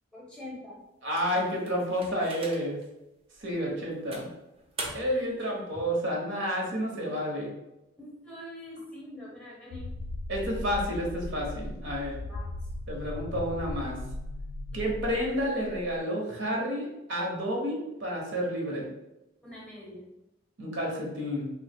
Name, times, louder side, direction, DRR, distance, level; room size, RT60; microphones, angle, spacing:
voice 1, 0.1-0.8 5.0-5.4 8.0-9.9 12.2-12.5 14.7-14.9 19.4-20.1, left 1 dB, 5° left, -4 dB, 0.7 m, -44 dB
voice 2, 1.0-2.8 3.4-4.3 4.9-7.5 10.3-12.2 12.9-14.0 14.7-18.9 20.6-21.5, equal, 65° right, -1 dB, 0.8 m, -30 dB
sound 1, 1.1-2.9 3.4-3.5 4.1-5.3, right 2 dB, 30° right, 0.5 m, -41 dB
sound 2, 9.7-16.0, left 2 dB, 80° left, 0.3 m, -38 dB
3.0 x 2.0 x 3.4 m, 0.92 s
head